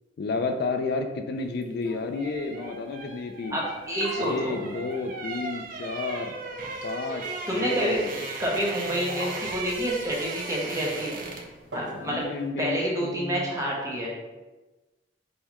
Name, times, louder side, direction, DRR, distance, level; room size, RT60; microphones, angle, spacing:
voice 1, 0.2-3.6 4.2-6.3 6.8-8.2 11.9-13.5, left 3 dB, 60° left, 6 dB, 0.3 m, -31 dB
sound 1, 1.6-11.6 11.9-12.1, right 3 dB, 50° right, 0.5 m, -37 dB
voice 2, 3.5-4.5 7.5-8.0 8.4-11.2 11.7-12.2 12.6-14.1, equal, 20° right, -3 dB, 0.8 m, -28 dB
sound 2, 3.6-12.5, equal, 75° right, 1.0 m, -45 dB
5.4 x 2.2 x 2.9 m, 1.2 s
head